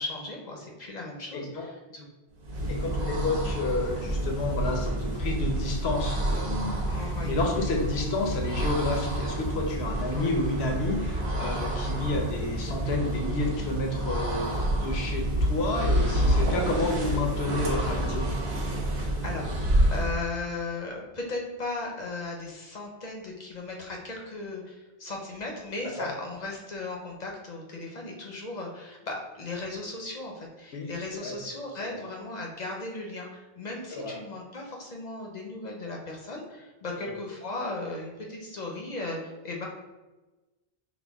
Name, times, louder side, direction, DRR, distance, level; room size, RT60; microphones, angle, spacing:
voice 1, 0.0-2.0 6.9-7.3 10.1-10.3 16.0-16.4 18.9-39.7, left 2 dB, 45° left, 0 dB, 0.7 m, -37 dB
voice 2, 1.3-1.7 2.7-18.3 25.8-26.1 30.7-30.9 31.2-31.4 31.8-32.0 33.9-34.2 37.0-37.1, left 2 dB, 85° left, 2 dB, 1.0 m, -30 dB
sound 1, 2.4-20.2, right 1 dB, 85° right, 1.2 m, -28 dB
6.0 x 2.1 x 3.4 m, 1.1 s
omnidirectional pair, 1.0 m